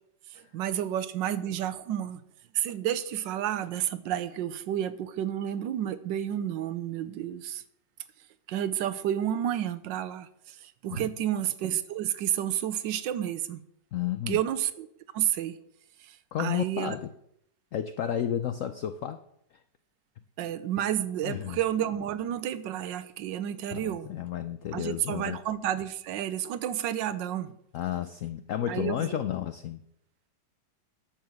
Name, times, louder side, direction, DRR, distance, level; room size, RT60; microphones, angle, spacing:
voice 1, 0.3-2.2 2.5-7.6 8.5-13.6 14.3-14.9 15.1-15.6 16.0-16.9 20.4-24.1 24.7-27.5 28.7-29.2, right 11 dB, 85° right, 14 dB, 1.4 m, -31 dB
voice 2, 13.9-14.4 16.3-17.1 17.7-19.2 21.2-21.6 23.7-25.4 27.7-29.8, left 10 dB, 80° left, 10 dB, 0.7 m, -32 dB
10.5 x 7.0 x 5.9 m, 0.73 s
omnidirectional pair, 2.0 m